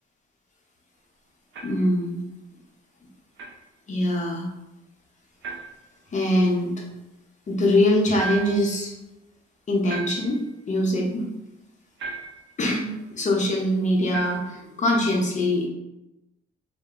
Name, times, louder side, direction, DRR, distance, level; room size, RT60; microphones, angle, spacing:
sound 1, 1.5-1.9 3.4-3.6 5.4-5.8 8.2-8.7 9.9-10.5 12.0-12.5 14.1-14.6, right 4 dB, 65° right, 0.5 m, -35 dB
voice 1, 1.6-2.2 3.9-4.5 6.1-6.7 7.5-8.9 9.7-11.2 12.6-15.7, left 1 dB, 35° left, -1 dB, 0.8 m, -23 dB
2.2 x 2.0 x 3.6 m, 0.93 s
cardioid pair, 90°, 20 cm